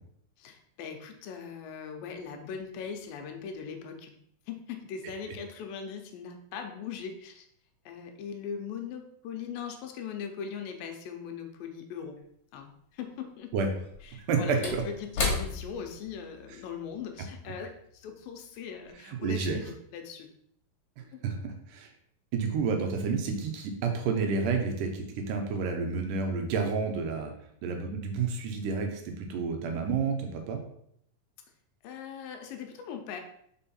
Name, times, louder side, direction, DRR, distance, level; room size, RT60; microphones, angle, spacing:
voice 1, 0.4-4.2 4.5-7.5 7.9-12.2 12.5-13.5 14.0-20.3 21.1-21.4 31.8-33.2, left 7 dB, 80° left, 4 dB, 2.4 m, -40 dB
Slam / Wood, 12.2-12.3 13.7-18.4 18.8-18.9, left 4 dB, 50° left, 2.1 m, -36 dB
voice 2, 14.3-14.8 19.0-19.6 21.0-21.9 22.3-27.3 27.6-30.6, right 5 dB, 75° right, 3 dB, 2.3 m, -30 dB
5.5 x 4.6 x 4.2 m, 0.69 s
omnidirectional pair, 4.1 m